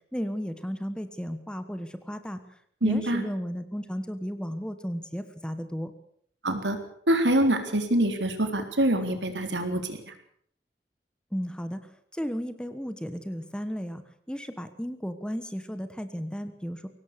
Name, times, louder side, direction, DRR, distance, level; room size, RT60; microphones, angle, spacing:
voice 1, 0.1-2.4 2.8-5.9 11.3-11.8 12.1-14.0 14.3-16.9, equal, 5° left, 10 dB, 1.4 m, -34 dB
voice 2, 2.8-3.2 6.4-6.8 7.1-10.0, right 1 dB, 85° right, 6 dB, 3.8 m, -25 dB
22.5 x 18.0 x 6.9 m, 0.63 s
head